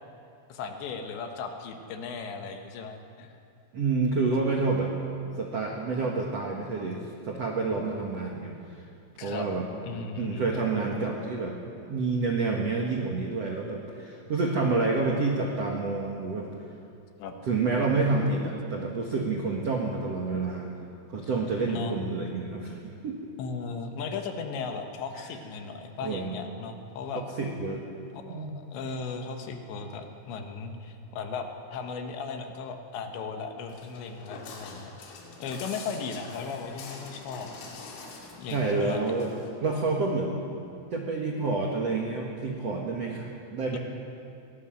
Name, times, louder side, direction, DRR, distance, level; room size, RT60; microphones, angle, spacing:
voice 1, 0.5-3.3 9.2-9.5 9.8-10.6 17.2-17.3 21.6-22.1 23.4-27.2 28.1-34.9 35.4-37.5 38.4-39.0 43.7-43.8, left 5 dB, 70° left, 5 dB, 3.2 m, -36 dB
voice 2, 3.7-4.9 5.4-8.5 9.2-9.6 10.2-11.5 11.9-16.5 17.4-20.7 21.1-23.2 26.0-26.4 27.4-27.8 28.3-28.5 38.5-39.3 39.6-40.5 40.9-43.8, right 3 dB, 90° right, 0 dB, 1.4 m, -28 dB
Walk footsteps, 33.7-39.5, left 4 dB, 85° left, 5.3 m, -45 dB
22.0 x 17.5 x 7.7 m, 2.6 s
omnidirectional pair, 5.8 m